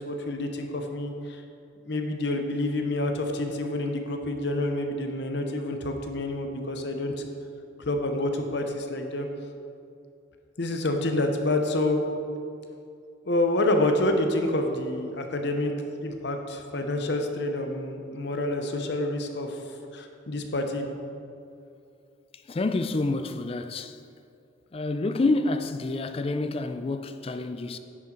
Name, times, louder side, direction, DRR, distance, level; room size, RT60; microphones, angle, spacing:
voice 1, 0.0-1.4 1.8-7.1 7.9-9.3 10.6-12.0 13.2-15.7 16.0-19.6 19.9-20.9, left 1 dB, 60° left, 0.8 m, -28 dB
voice 2, 22.3-24.0 24.7-27.8, left 2 dB, 30° left, 0.4 m, -28 dB
10.0 x 6.3 x 4.4 m
head